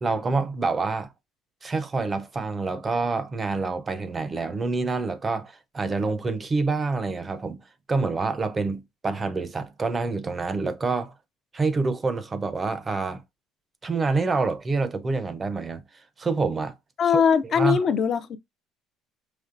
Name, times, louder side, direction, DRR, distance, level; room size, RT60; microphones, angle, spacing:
voice 1, 0.0-1.1 1.6-7.6 7.9-11.1 11.5-13.2 13.8-15.8 16.2-16.7 17.1-17.2 17.6-17.8, right 3 dB, 20° right, 0.5 m, -27 dB
voice 2, 17.0-18.4, left 7 dB, 35° left, 0.4 m, -21 dB
5.1 x 3.0 x 2.5 m
cardioid pair, 155°, 0 cm